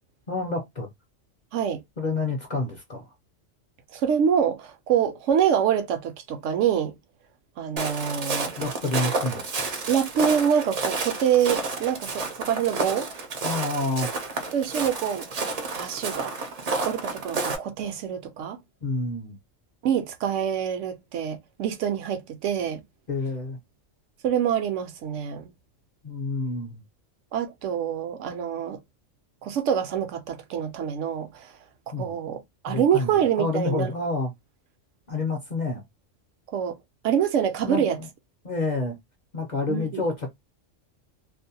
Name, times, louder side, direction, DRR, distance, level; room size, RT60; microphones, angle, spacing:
voice 1, 0.3-0.9 2.0-3.1 8.6-9.8 13.4-14.1 18.8-19.4 23.1-23.6 26.0-26.8 31.9-32.2 32.7-34.3 35.1-35.8 37.6-38.1 38.4-39.0 39.3-40.3, left 2 dB, 45° left, 0.6 m, -28 dB
voice 2, 3.9-6.9 7.6-8.5 9.9-13.1 14.5-15.2 15.7-16.3 16.8-18.6 19.8-22.8 24.2-25.5 27.3-28.8 29.4-31.5 31.9-33.9 36.5-36.8 37.0-38.0 39.7-40.0, right 8 dB, 75° right, 0.9 m, -25 dB
Walk footsteps, 7.8-17.6, right 3 dB, 45° right, 0.5 m, -30 dB
2.6 x 2.1 x 2.6 m
omnidirectional pair, 1.3 m